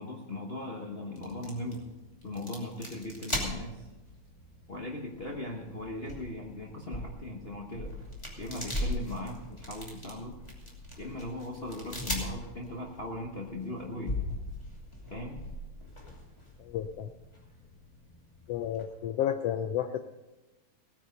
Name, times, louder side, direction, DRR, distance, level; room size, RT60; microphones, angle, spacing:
voice 1, 0.0-1.9 2.2-3.9 4.7-7.9 8.4-10.4 11.0-14.2 15.1-15.4, left 1 dB, 65° left, -2 dB, 0.6 m, -39 dB
sound 1, 1.1-18.8, left 1 dB, 10° left, 2.4 m, -40 dB
voice 2, 16.6-17.1 18.5-20.0, left 10 dB, 90° left, 8 dB, 1.3 m, -31 dB
18.0 x 9.5 x 5.3 m, 1.1 s
omnidirectional pair, 3.4 m